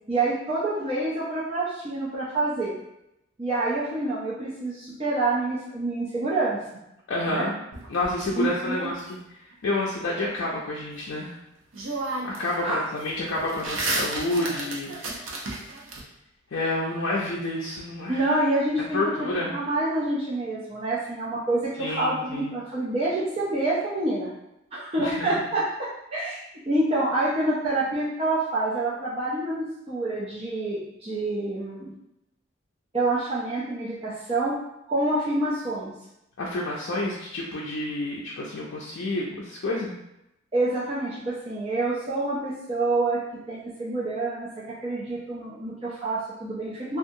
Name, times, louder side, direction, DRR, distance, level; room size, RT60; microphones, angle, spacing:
voice 1, 0.1-2.8 3.4-6.6 7.3-7.5 8.4-8.9 12.6-12.8 18.1-24.3 24.7-25.6 26.1-26.4 26.6-31.9 32.9-34.6 34.9-35.9 40.5-43.2 43.5-44.5 44.8-47.0, right 2 dB, 30° right, -8 dB, 0.4 m, -27 dB
voice 2, 7.1-7.5 7.9-9.0 9.3-11.3 12.2-15.4 16.5-18.2 18.9-19.5 21.8-22.5 25.0-25.3 36.4-39.9, left 2 dB, 70° left, -5 dB, 0.4 m, -29 dB
sound 1, 7.7-9.0 11.2-11.3 11.7-12.5 12.8-16.0, right 2 dB, 75° right, 0.6 m, -32 dB
2.7 x 2.3 x 2.6 m, 0.85 s
head